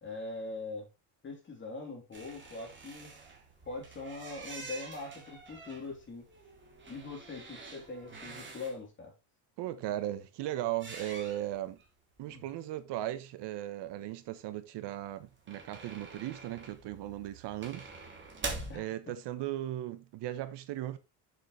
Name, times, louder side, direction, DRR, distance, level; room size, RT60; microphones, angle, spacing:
voice 1, 0.0-0.9 1.2-3.1 3.7-6.3 6.9-9.1 12.3-12.4 18.7-19.1, left 3 dB, 25° left, 3.6 m, -42 dB
sound 1, 2.1-8.7 10.7-11.8 12.2-12.3 12.5-12.6 15.0-18.8, right 3 dB, 25° right, 3.0 m, -46 dB
voice 2, 9.6-11.8 12.2-17.9 18.7-21.0, right 13 dB, 65° right, 1.1 m, -37 dB
8.9 x 7.3 x 3.2 m
cardioid pair, 155°, 45 cm